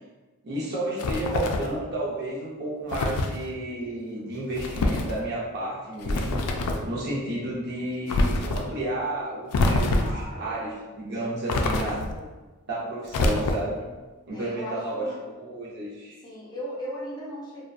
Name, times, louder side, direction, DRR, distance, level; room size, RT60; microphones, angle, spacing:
voice 1, 0.4-6.5 6.8-12.1 12.7-13.9 14.3-16.2, right 1 dB, 50° right, -5 dB, 0.6 m, -32 dB
sound 1, 1.0-1.8 2.9-3.4 4.6-5.1 6.0-6.9 8.1-8.6 9.5-10.3 11.5-12.2 13.1-13.8, left 2 dB, 85° left, 0.3 m, -25 dB
voice 2, 9.7-10.6 11.4-11.9 12.1-12.3 14.3-15.2 16.2-17.6, equal, 20° left, -6 dB, 0.5 m, -38 dB
2.4 x 2.1 x 2.5 m, 1.2 s
head